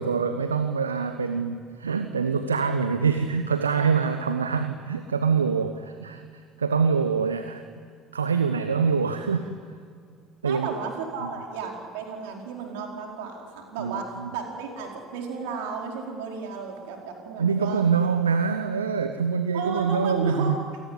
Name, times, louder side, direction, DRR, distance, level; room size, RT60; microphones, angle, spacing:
voice 1, 0.0-6.2 6.6-7.6 8.1-9.5 10.4-10.7 11.2-11.3 13.8-14.3 17.4-20.6, right 5 dB, 80° right, 9 dB, 0.9 m, -25 dB
voice 2, 10.4-17.8 19.5-20.5, right 5 dB, 65° right, 1 dB, 4.9 m, -34 dB
28.5 x 18.5 x 9.9 m, 2.3 s
figure-of-eight pair, 60°, 0 cm